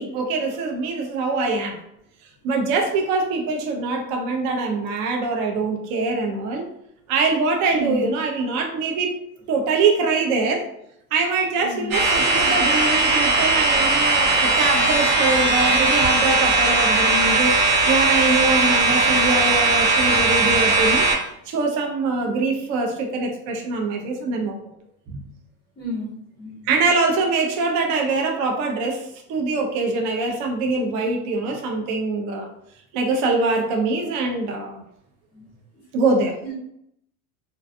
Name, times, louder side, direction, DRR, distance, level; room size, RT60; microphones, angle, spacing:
voice 1, 0.0-1.8 2.4-6.7 7.1-9.2 9.5-10.7 11.1-24.6 25.1-25.2 26.7-32.5 32.9-34.8 35.9-36.4, right 3 dB, 45° right, 2 dB, 0.5 m, -23 dB
voice 2, 7.7-8.1 11.6-12.0 25.8-26.7 35.3-35.4 36.4-36.5, equal, 15° left, -5 dB, 0.5 m, -31 dB
sound 1, 11.9-21.2, right 3 dB, 65° right, 1.1 m, -18 dB
2.5 x 2.2 x 2.5 m, 0.76 s
supercardioid pair, 130°, 44 cm